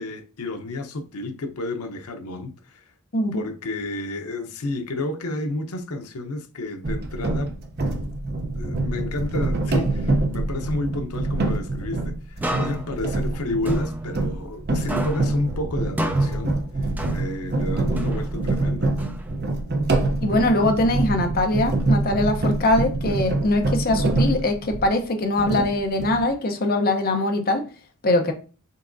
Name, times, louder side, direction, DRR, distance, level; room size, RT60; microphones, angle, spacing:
voice 1, 0.0-2.9 3.3-7.9 8.5-18.9, left 2 dB, 85° left, 0.8 m, -31 dB
sound 1, 6.8-25.0 25.4-26.3, right 2 dB, 45° right, 0.7 m, -25 dB
sound 2, 12.4-14.6 14.9-17.6 18.0-19.6, equal, 10° right, 0.5 m, -33 dB
voice 2, 20.2-27.6 28.0-28.3, left 2 dB, 45° left, 0.8 m, -22 dB
5.5 x 3.7 x 2.6 m
head